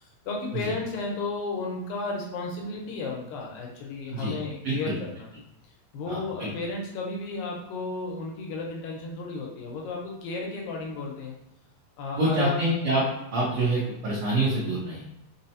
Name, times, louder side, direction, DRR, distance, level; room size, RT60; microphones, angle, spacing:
voice 1, 0.0-5.3 5.9-11.4 12.0-12.6, left 3 dB, 85° left, -1 dB, 2.4 m, -33 dB
voice 2, 4.6-5.0 6.1-6.5 12.1-13.0 13.3-15.0, right 2 dB, 80° right, -7 dB, 1.2 m, -26 dB
5.8 x 2.0 x 2.7 m, 0.84 s
omnidirectional pair, 3.9 m